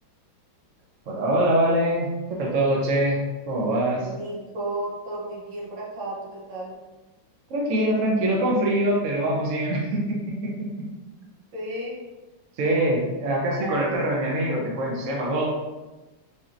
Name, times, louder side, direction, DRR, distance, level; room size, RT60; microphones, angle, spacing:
voice 1, 1.1-3.2 3.5-4.1 7.5-10.7 12.6-15.5, right 1 dB, 60° right, -3 dB, 0.9 m, -24 dB
voice 2, 4.0-6.7 11.5-12.0 13.5-14.0, right 1 dB, 75° right, -4 dB, 1.7 m, -33 dB
4.2 x 3.0 x 2.5 m, 1.1 s
omnidirectional pair, 2.2 m